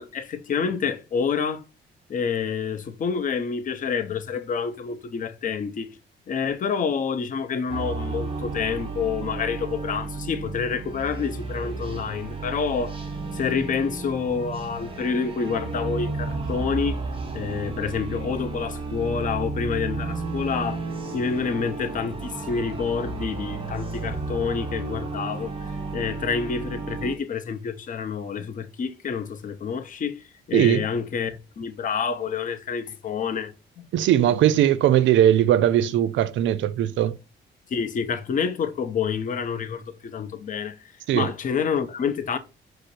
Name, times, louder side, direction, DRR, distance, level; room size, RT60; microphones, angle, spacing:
voice 1, 0.0-1.6 2.1-5.9 6.3-13.0 13.3-17.0 17.3-20.8 21.1-25.5 25.9-33.9 37.7-40.8 41.1-42.4, left 6 dB, 40° left, 0.6 m, -28 dB
sound 1, 7.7-27.2, right 3 dB, 25° right, 0.9 m, -33 dB
voice 2, 30.5-30.9 33.9-37.2 41.1-41.3, right 11 dB, 75° right, 0.4 m, -19 dB
4.9 x 2.0 x 4.6 m
cardioid pair, 90°, 20 cm